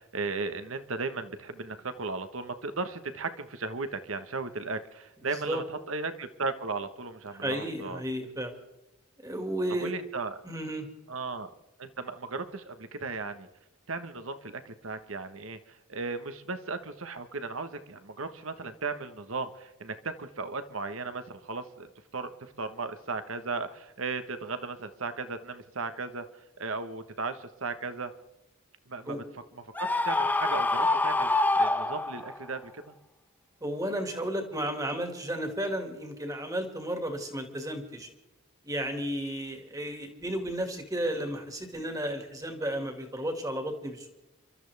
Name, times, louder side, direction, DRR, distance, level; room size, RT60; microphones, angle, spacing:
voice 1, 0.0-8.0 9.8-10.4 11.1-11.5 11.8-13.5 13.9-21.9 22.1-26.2 26.6-28.1 28.9-29.2 29.8-31.3 31.6-32.9, right 3 dB, 75° right, 9 dB, 1.3 m, -36 dB
voice 2, 7.4-8.5 9.2-9.9 10.4-10.9 29.1-29.2 33.6-38.1 38.6-44.1, right 1 dB, 15° right, 4 dB, 2.1 m, -33 dB
Screaming, 29.8-32.4, left 2 dB, 10° left, 0.4 m, -26 dB
29.0 x 13.0 x 3.5 m, 0.95 s
head